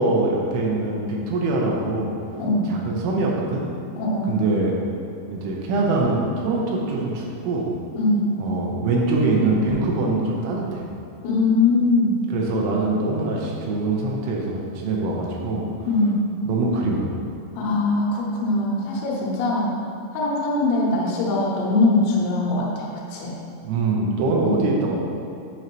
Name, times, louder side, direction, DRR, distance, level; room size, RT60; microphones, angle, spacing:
voice 1, 0.0-2.1 2.7-3.7 4.3-4.8 5.3-7.7 8.4-10.8 12.3-15.7 16.5-17.1 23.6-25.0, right 2 dB, 90° right, -2 dB, 3.1 m, -23 dB
voice 2, 2.4-2.7 4.0-4.3 8.0-8.2 11.2-12.2 15.9-16.2 17.6-19.7 20.1-23.4 24.4-24.8, left 2 dB, 75° left, -4 dB, 3.1 m, -22 dB
9.6 x 5.1 x 3.0 m, 2.7 s
omnidirectional pair, 5.4 m